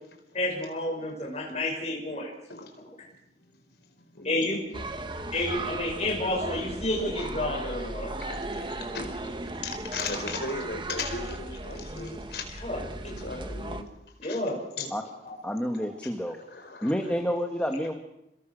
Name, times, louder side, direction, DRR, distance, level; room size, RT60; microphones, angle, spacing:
voice 1, 0.3-2.3 4.2-4.6 5.3-8.1 8.9-9.0 9.2-9.3 12.5-12.9 14.2-14.9 15.2-15.3 15.8-15.9, left 1 dB, 35° left, -2 dB, 7.3 m, -30 dB
voice 2, 4.1-4.8 5.3-5.4 8.5-9.1 9.6-12.4 12.8-13.9 14.2-14.4 14.8-14.9 16.0-16.1 16.5-16.9, left 3 dB, 65° left, 5 dB, 4.7 m, -37 dB
sound 1, 4.7-13.8, right 2 dB, 25° right, 1.8 m, -36 dB
voice 3, 15.4-16.4 16.8-18.0, equal, 5° left, 4 dB, 1.9 m, -29 dB
29.0 x 21.5 x 6.6 m, 0.86 s
head